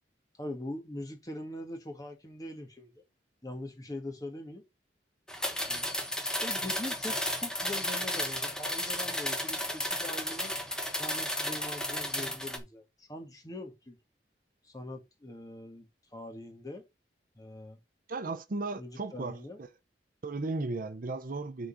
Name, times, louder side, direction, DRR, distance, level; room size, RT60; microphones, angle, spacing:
voice 1, 0.4-3.0 3.4-4.6 5.7-5.9 6.4-10.6 10.9-14.0 14.6-16.8 17.3-17.8 18.8-19.6, left 1 dB, 20° left, 1.6 m, -42 dB
sound 1, 5.3-12.6, left 1 dB, 5° left, 1.1 m, -33 dB
voice 2, 18.1-19.7 20.2-21.7, right 3 dB, 50° right, 0.7 m, -35 dB
6.3 x 3.9 x 6.1 m
head